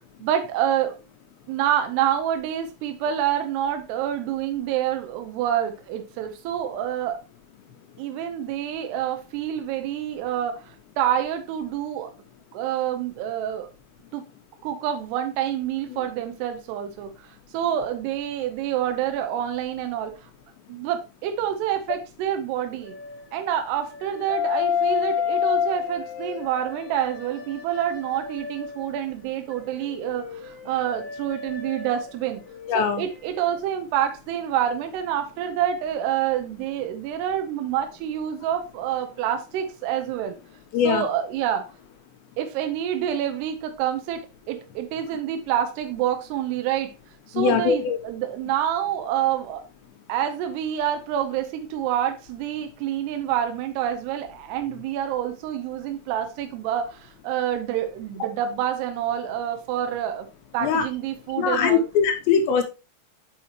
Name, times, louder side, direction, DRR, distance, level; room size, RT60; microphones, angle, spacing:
voice 1, 0.2-1.0 1.5-7.2 8.0-12.1 12.5-13.7 14.1-14.2 14.6-20.3 20.7-22.9 23.3-32.4 32.7-40.4 40.8-41.7 42.4-46.9 47.3-49.6 50.1-60.3 60.5-61.8, right 10 dB, 80° right, 2.5 m, -27 dB
sound 1, 22.8-23.4 23.9-29.0 29.5-33.1 33.3-33.6, left 8 dB, 50° left, 2.0 m, -30 dB
voice 2, 32.7-33.1 40.7-41.0 47.3-48.0 60.6-60.8 61.4-62.6, left 7 dB, 80° left, 2.8 m, -21 dB
7.2 x 6.1 x 2.9 m
omnidirectional pair, 5.5 m